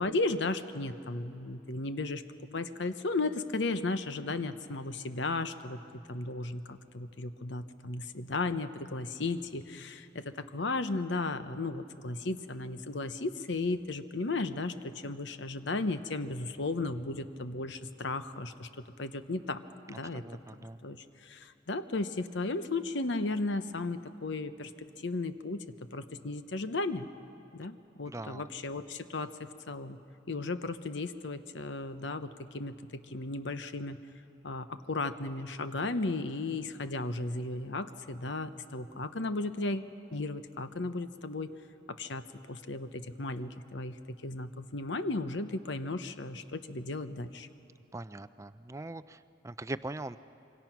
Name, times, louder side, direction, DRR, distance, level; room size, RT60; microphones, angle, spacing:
voice 1, 0.0-2.2 2.5-18.7 19.0-19.6 19.9-20.2 20.8-24.7 25.0-25.6 25.9-27.1 27.5-30.0 30.3-34.0 34.4-41.5 41.9-47.5, left 2 dB, 65° left, 10 dB, 0.9 m, -35 dB
voice 2, 19.9-20.8 28.1-28.4 47.9-50.2, right 2 dB, 15° right, 13 dB, 0.4 m, -41 dB
26.5 x 24.0 x 6.0 m, 3.0 s
head